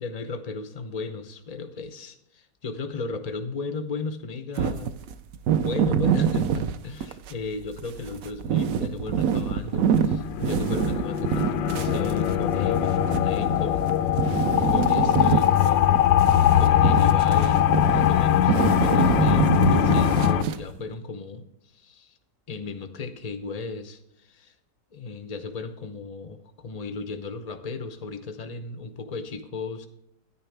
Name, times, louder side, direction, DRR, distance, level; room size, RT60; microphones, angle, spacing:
voice 1, 0.0-4.9 5.5-13.9 14.2-14.3 14.7-15.8 16.6-22.2 22.5-24.5 24.9-29.9, left 4 dB, 70° left, 7 dB, 0.3 m, -35 dB
sound 1, 4.6-7.4 7.8-13.9 14.2-20.8, right 7 dB, 70° right, 0.8 m, -25 dB
sound 2, 9.8-20.4, left 11 dB, 85° left, 1.3 m, -21 dB
10.0 x 9.9 x 3.3 m, 0.82 s
omnidirectional pair, 1.9 m